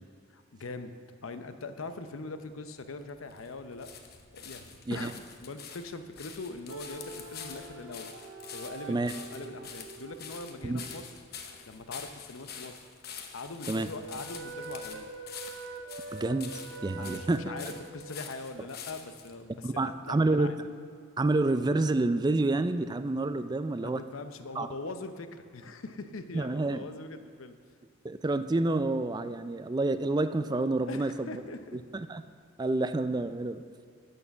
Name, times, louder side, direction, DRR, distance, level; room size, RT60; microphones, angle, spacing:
voice 1, 0.3-0.9 1.2-3.9 4.3-8.1 8.5-11.0 11.7-12.8 13.3-15.1 17.0-20.6 23.8-27.5 30.9-31.8, left 3 dB, 90° left, 9 dB, 0.7 m, -42 dB
sound 1, 2.8-19.3 20.1-20.2, left 7 dB, 50° left, 0.9 m, -46 dB
sound 2, 6.7-11.6 13.6-17.9, right 3 dB, 90° right, 1.0 m, -44 dB
voice 2, 16.1-17.4 19.6-20.5 21.2-24.0 24.6-24.7 26.3-26.8 28.0-31.3 31.7-32.2 32.6-33.6, right 2 dB, 20° right, 11 dB, 0.4 m, -28 dB
10.5 x 6.6 x 7.0 m, 2.1 s
head